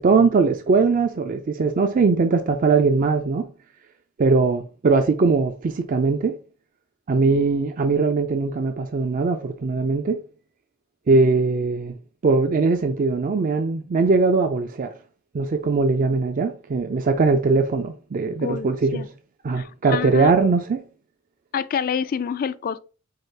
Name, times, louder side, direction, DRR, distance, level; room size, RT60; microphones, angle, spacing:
voice 1, 0.0-3.5 4.2-6.4 7.1-10.2 11.1-11.9 12.2-14.9 15.3-19.1 19.4-20.8, right 4 dB, 40° right, 0.4 m, -20 dB
voice 2, 18.4-19.1 19.5-20.3 21.5-22.8, left 7 dB, 45° left, 0.3 m, -27 dB
4.8 x 2.5 x 4.4 m
head